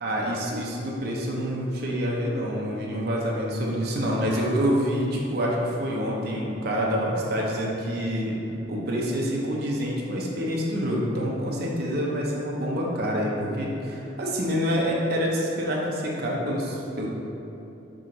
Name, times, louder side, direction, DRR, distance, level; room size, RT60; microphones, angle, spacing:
voice 1, 0.0-8.4 8.7-17.1, equal, 55° right, -3 dB, 0.6 m, -27 dB
5.0 x 2.8 x 3.7 m, 3.0 s
head